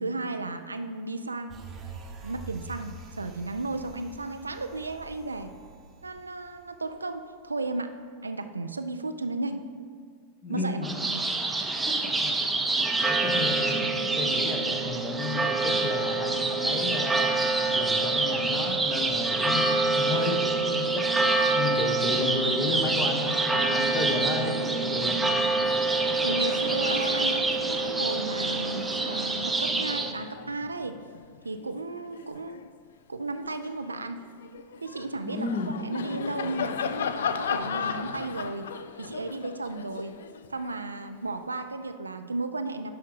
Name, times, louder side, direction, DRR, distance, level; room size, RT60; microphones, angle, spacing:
voice 1, 0.0-1.6 2.2-5.5 6.0-8.0 8.2-9.6 10.5-10.8 26.2-31.0 31.4-32.6 33.1-34.2 34.8-35.5 35.8-38.7 39.0-40.2 40.5-42.9, right 2 dB, 80° right, 8 dB, 0.3 m, -34 dB
sound 1, 1.5-7.1 7.5-7.6, right 3 dB, 25° right, 0.9 m, -45 dB
voice 2, 10.4-10.9 11.7-17.4 17.7-21.1 21.5-25.2 35.2-35.7, left 3 dB, 30° left, 2 dB, 1.1 m, -33 dB
sound 2, 10.8-30.1, right 3 dB, 10° right, 0.6 m, -26 dB
Laughter, 25.5-25.7 26.0-32.7 33.2-41.4, left 7 dB, 65° left, 0.3 m, -37 dB
10.5 x 3.8 x 5.3 m, 2.1 s
figure-of-eight pair, 90°, 0 cm